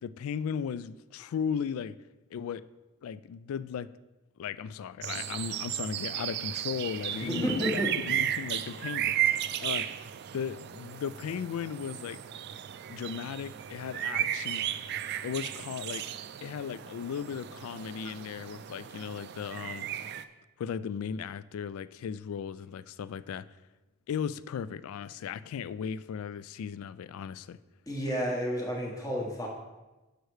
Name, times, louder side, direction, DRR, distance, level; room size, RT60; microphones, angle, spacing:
voice 1, 0.0-2.0 2.3-2.6 3.0-3.9 4.4-10.0 10.3-12.2 12.9-14.7 15.2-16.1 16.4-19.9 20.6-23.5 24.1-27.6, left 7 dB, 75° left, 16 dB, 0.3 m, -36 dB
sound 1, 5.0-20.2, right 11 dB, 50° right, 0.3 m, -34 dB
voice 2, 7.1-7.9 27.9-29.5, equal, 15° left, -1 dB, 1.2 m, -31 dB
6.5 x 6.4 x 4.7 m, 1.1 s
head